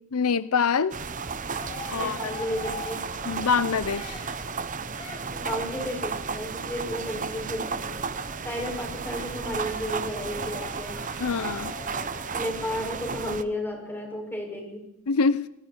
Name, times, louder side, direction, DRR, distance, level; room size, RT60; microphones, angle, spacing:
voice 1, 0.1-1.0 1.9-2.3 3.2-4.2 11.2-11.7 15.1-15.5, left 5 dB, 85° left, 17 dB, 0.7 m, -25 dB
sound 1, 0.9-13.4, right 5 dB, 35° right, 0.9 m, -33 dB
Cheering, 1.1-6.1 6.9-12.4, left 2 dB, 30° left, 6.1 m, -44 dB
voice 2, 1.9-3.0 5.3-7.9 8.4-10.9 12.3-14.8, left 1 dB, 10° left, 0 dB, 6.6 m, -33 dB
30.0 x 19.5 x 4.6 m, 0.82 s
head